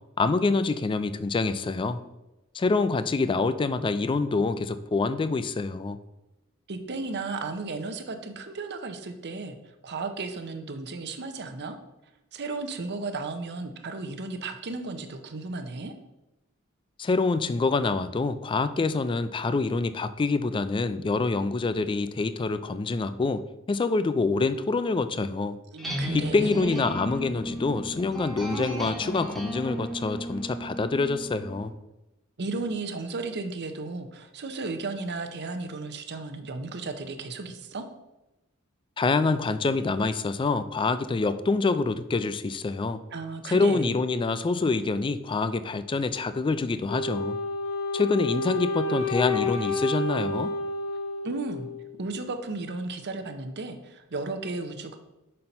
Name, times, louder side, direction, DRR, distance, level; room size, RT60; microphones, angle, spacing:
voice 1, 0.2-2.0 2.5-6.0 17.0-23.4 23.7-25.6 26.1-31.7 39.0-43.0 43.4-47.4 47.9-50.5, left 3 dB, 25° left, 12 dB, 0.3 m, -26 dB
voice 2, 6.7-9.5 9.8-11.8 12.3-15.9 25.7-26.8 32.4-37.8 43.1-44.0 51.2-51.7 52.0-55.0, right 3 dB, 55° right, 7 dB, 0.7 m, -34 dB
sound 1, 25.8-31.7, equal, ahead, 1.2 m, -35 dB
Wind instrument woodwind instrument, 46.9-51.9, left 2 dB, 80° left, 0.8 m, -30 dB
5.6 x 4.3 x 5.2 m, 0.96 s
head